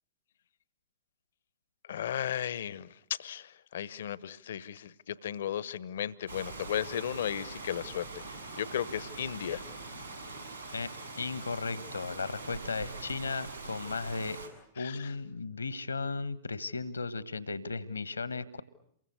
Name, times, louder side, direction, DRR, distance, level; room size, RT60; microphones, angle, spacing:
voice 1, 1.8-9.6 14.8-15.1, left 9 dB, 60° left, 1.0 m, -35 dB
Rain, 6.3-14.5, right 3 dB, 90° right, 6.1 m, -43 dB
voice 2, 11.2-14.4 14.8-18.6, left 4 dB, 75° left, 1.4 m, -35 dB
28.5 x 23.0 x 8.0 m
figure-of-eight pair, 95°, 0 cm